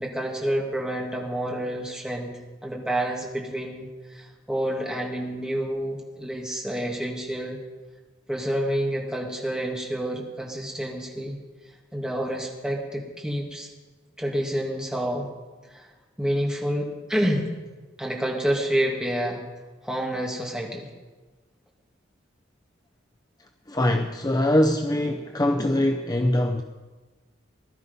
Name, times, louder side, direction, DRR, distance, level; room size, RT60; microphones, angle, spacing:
voice 1, 0.0-7.6 8.3-11.4 11.9-13.7 14.2-15.3 15.7-15.8 16.2-17.5 18.0-19.4 19.8-20.9, equal, 5° right, -2 dB, 2.3 m, -28 dB
voice 2, 23.7-26.6, left 1 dB, 20° left, 4 dB, 0.6 m, -23 dB
19.5 x 12.0 x 5.4 m, 1.3 s
head